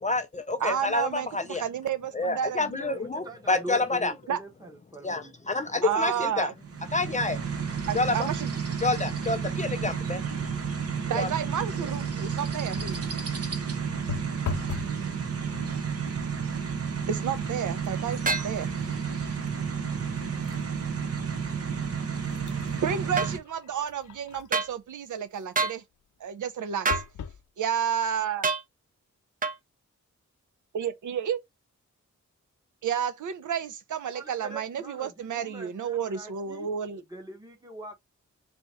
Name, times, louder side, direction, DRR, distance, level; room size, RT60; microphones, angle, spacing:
voice 1, 0.0-1.6 2.1-4.1 5.0-6.5 6.9-7.4 7.9-8.3 8.8-10.2 11.1-11.3, left 3 dB, 25° left, 0.4 m, -28 dB
voice 2, 0.6-3.0 4.3-4.4 5.8-6.5 7.9-8.5 11.1-13.0 17.1-18.7 22.8-25.8 26.2-27.0 27.6-28.5 30.7-31.4 32.8-37.0, right 8 dB, 80° right, 0.6 m, -31 dB
voice 3, 2.9-5.5 34.1-36.7 37.1-37.9, right 2 dB, 10° right, 1.0 m, -43 dB
sound 1, 6.6-23.4, right 6 dB, 55° right, 0.8 m, -31 dB
sound 2, 12.7-13.2 14.1-15.0 15.3-15.8 16.6-16.7 17.1-20.7 21.2-21.3 21.9-24.7 26.9-27.4 28.1-28.2 28.4-28.5, left 6 dB, 80° left, 0.6 m, -40 dB
sound 3, 18.2-18.5 23.2-23.3 24.5-24.7 25.5-25.8 26.8-27.1 28.4-28.6 29.4-29.6, right 4 dB, 30° right, 0.5 m, -26 dB
3.4 x 2.9 x 4.0 m
wide cardioid pair, 175°, 30 cm